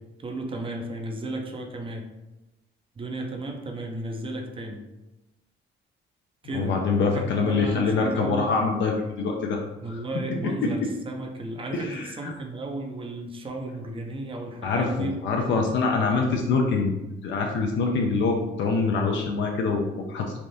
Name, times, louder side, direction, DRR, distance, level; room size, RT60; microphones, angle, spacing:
voice 1, 0.2-2.1 3.0-4.8 6.4-6.8 7.1-8.5 9.8-15.2 16.2-16.3, right 2 dB, 25° right, 3 dB, 0.5 m, -34 dB
voice 2, 6.5-9.6 9.9-10.0 10.3-10.9 11.7-12.3 14.6-16.9 17.2-20.4, left 4 dB, 70° left, 1 dB, 0.5 m, -25 dB
3.4 x 2.5 x 2.6 m, 1.0 s
cardioid pair, 90°, 20 cm